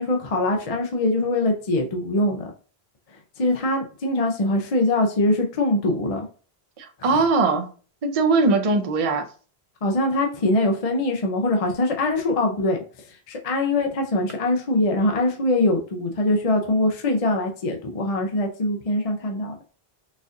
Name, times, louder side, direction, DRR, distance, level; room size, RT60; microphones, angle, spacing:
voice 1, 0.0-2.5 3.4-6.3 7.0-7.3 9.8-19.6, left 2 dB, 40° left, 0.6 m, -23 dB
voice 2, 6.8-7.7 8.0-9.2, right 3 dB, 45° right, 0.5 m, -20 dB
4.1 x 2.5 x 2.5 m
omnidirectional pair, 1.1 m